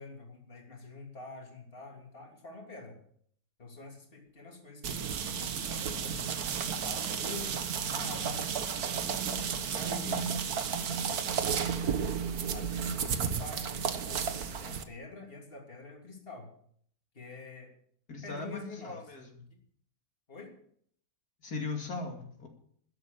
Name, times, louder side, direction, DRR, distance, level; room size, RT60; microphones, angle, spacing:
voice 1, 0.0-3.0 3.6-6.2 6.8-10.4 10.6-12.0 12.5-16.5 17.1-17.7 18.2-19.0 19.5-19.6 20.3-20.6, left 3 dB, 35° left, 1 dB, 3.2 m, -47 dB
sound 1, 4.8-14.8, right 7 dB, 80° right, 1.6 m, -33 dB
voice 2, 18.1-19.4 21.4-22.5, left 3 dB, 85° left, 1 dB, 3.2 m, -38 dB
13.5 x 11.0 x 6.9 m, 0.62 s
omnidirectional pair, 1.6 m